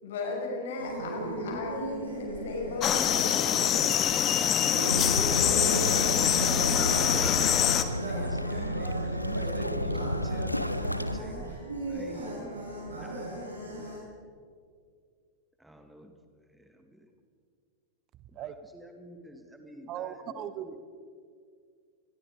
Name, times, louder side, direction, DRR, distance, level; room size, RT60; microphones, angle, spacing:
voice 1, 0.0-3.5, left 3 dB, 60° left, 2 dB, 6.3 m, -35 dB
sound 1, 0.8-14.0, right 1 dB, 75° right, 7.2 m, -37 dB
sound 2, 2.8-7.8, left 10 dB, 30° left, 1.6 m, -25 dB
sound 3, 4.9-11.2, equal, 90° left, 0.9 m, -31 dB
voice 2, 5.8-11.6 11.9-12.4 12.9-13.3 13.6-14.0 15.6-16.1 16.6-17.1 18.7-20.8, right 1 dB, 5° right, 5 dB, 2.2 m, -48 dB
voice 3, 19.9-20.8, right 10 dB, 35° right, 13 dB, 1.2 m, -38 dB
29.0 x 21.5 x 5.1 m, 2.1 s
figure-of-eight pair, 90°, 0 cm